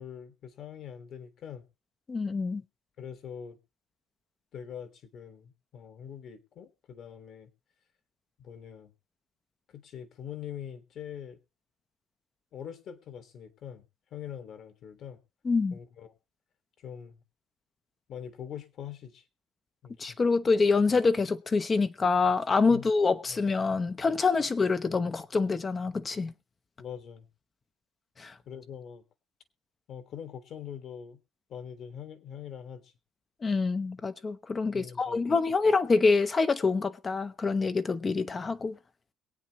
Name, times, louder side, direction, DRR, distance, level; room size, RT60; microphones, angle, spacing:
voice 1, 0.0-1.6 3.0-3.6 4.5-7.5 8.4-8.9 9.7-11.4 12.5-13.8 14.1-15.2 15.7-16.1 16.8-17.2 18.1-19.2 19.8-20.2 22.6-22.9 23.3-23.4 26.8-27.3 28.5-29.0 29.9-31.2 31.5-32.9 34.6-35.4, left 8 dB, 45° left, 1.6 m, -43 dB
voice 2, 2.1-2.6 15.4-15.8 20.0-26.3 28.2-28.3 33.4-38.8, left 4 dB, 20° left, 0.6 m, -26 dB
22.5 x 8.9 x 3.0 m
cardioid pair, 160°, 0 cm